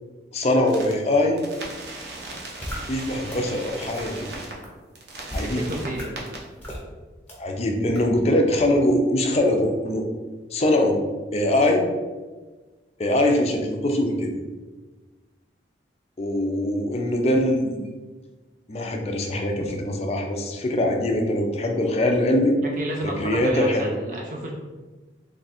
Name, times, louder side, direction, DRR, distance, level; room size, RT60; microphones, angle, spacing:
voice 1, 0.3-1.4 2.9-4.3 5.3-5.6 7.4-10.0 10.5-11.0 11.3-11.8 13.0-14.3 16.2-17.8 18.7-22.6 23.0-23.9, left 1 dB, 35° left, 3 dB, 0.4 m, -22 dB
sound 1, 0.7-0.9 1.4-4.5 4.9-6.4, right 2 dB, 70° right, 0.8 m, -37 dB
sound 2, 2.6-2.8 3.3-3.4 3.9-4.0 4.6-4.7 5.3-5.5 5.9-6.0 6.6-6.8 7.3-7.4 7.9-8.0, equal, 10° left, 0.9 m, -33 dB
voice 2, 5.4-6.2 22.6-24.5, right 1 dB, 45° right, 0 dB, 0.4 m, -32 dB
3.2 x 2.4 x 4.1 m, 1.3 s
head